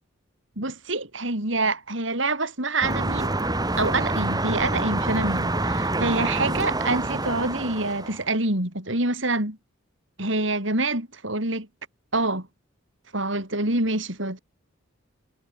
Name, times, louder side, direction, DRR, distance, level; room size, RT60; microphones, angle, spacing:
voice 1, 0.6-3.3 3.8-9.6 10.2-11.7 12.1-12.5 13.1-14.4, right 2 dB, 65° right, 6.4 m, -26 dB
sound 1, 2.8-8.3, right 2 dB, 20° right, 2.8 m, -26 dB
head